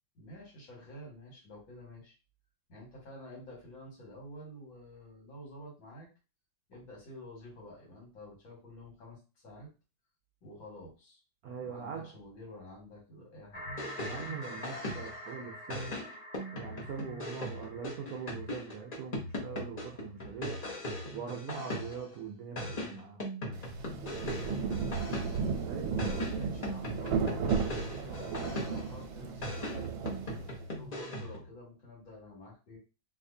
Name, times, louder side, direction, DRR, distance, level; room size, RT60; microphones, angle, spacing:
voice 1, 0.1-2.1 2.7-6.1 6.7-9.7 10.4-11.2 11.6-13.6 23.9-24.9 25.9-29.9 30.8-32.8, left 1 dB, 80° left, 2.4 m, -49 dB
voice 2, 11.4-12.1 14.0-16.0 16.5-20.6 21.1-23.2 25.6-26.3, right 6 dB, 65° right, 1.0 m, -42 dB
sound 1, 13.5-19.2, equal, 20° left, 1.0 m, -47 dB
sound 2, 13.6-15.3 15.7-22.1 22.6-25.6 26.0-29.0 29.4-31.5, left 1 dB, 40° left, 0.6 m, -39 dB
Rain, 23.5-30.8, right 5 dB, 85° right, 1.4 m, -34 dB
4.1 x 2.5 x 2.7 m
omnidirectional pair, 2.1 m